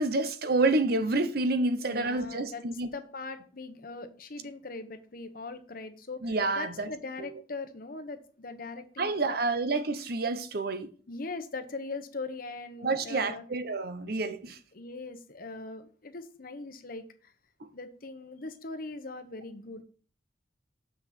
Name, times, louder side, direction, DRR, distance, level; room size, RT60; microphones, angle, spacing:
voice 1, 0.0-2.9 6.2-6.9 9.0-10.9 12.8-14.6, right 2 dB, 60° right, 0.9 m, -28 dB
voice 2, 1.8-2.6 2.9-9.4 11.1-13.4 14.4-17.0 17.7-19.8, left 3 dB, 55° left, 1.0 m, -40 dB
7.2 x 6.2 x 4.3 m
head